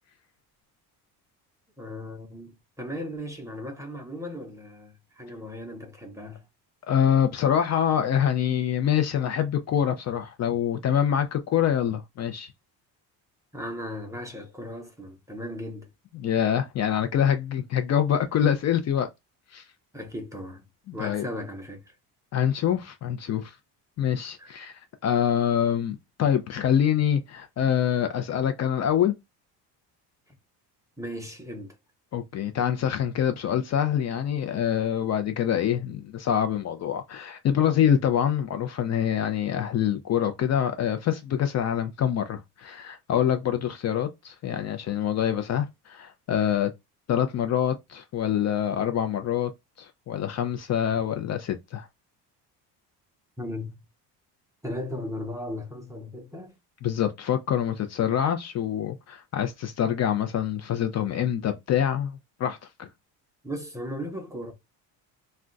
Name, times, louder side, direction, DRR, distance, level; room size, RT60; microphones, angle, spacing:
voice 1, 1.8-6.5 13.5-15.9 19.9-22.0 24.4-24.5 31.0-31.8 53.4-53.8 54.6-56.6 63.4-64.5, left 1 dB, 10° right, 0.6 m, -37 dB
voice 2, 6.9-12.5 16.1-19.1 19.5-19.6 20.9-21.3 22.3-23.5 24.0-24.7 25.0-29.1 32.1-46.7 47.1-49.5 49.8-51.9 56.8-62.9, left 9 dB, 40° left, 0.5 m, -25 dB
2.3 x 2.2 x 3.7 m
cardioid pair, 125°, 40 cm